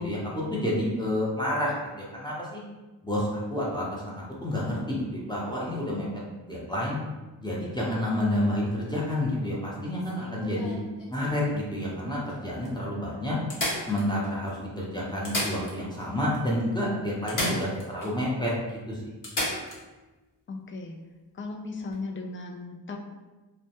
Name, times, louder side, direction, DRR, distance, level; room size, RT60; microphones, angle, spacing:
voice 1, 0.0-2.6 3.0-6.1 6.5-7.0 7.4-10.8 11.1-13.4 13.9-19.2, left 1 dB, 10° left, -6 dB, 0.7 m, -29 dB
sound 1, 10.0-11.6 12.3-12.4 12.6-12.7 13.5-14.5 15.1-16.1 16.3-16.4 17.3-18.1 18.5-18.6 19.2-19.8 21.8-21.9, left 1 dB, 50° left, 0.8 m, -33 dB
voice 2, 20.5-21.0 21.3-23.0, left 3 dB, 30° left, 2 dB, 0.4 m, -36 dB
2.2 x 2.1 x 2.8 m, 1.2 s
cardioid pair, 50°, 41 cm